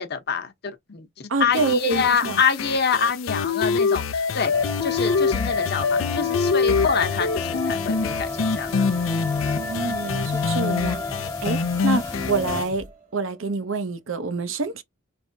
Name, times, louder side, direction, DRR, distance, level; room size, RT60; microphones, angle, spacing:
voice 1, 0.0-8.7, left 6 dB, 50° left, 0.9 m, -26 dB
voice 2, 1.3-2.4 9.6-11.0 11.4-14.8, right 3 dB, 75° right, 0.7 m, -27 dB
sound 1, 1.5-12.6, left 5 dB, 80° left, 0.5 m, -25 dB
sound 2, 4.5-12.6, left 3 dB, 15° left, 0.3 m, -32 dB
sound 3, 7.9-13.7, right 1 dB, 35° right, 1.0 m, -42 dB
4.4 x 3.3 x 2.6 m
head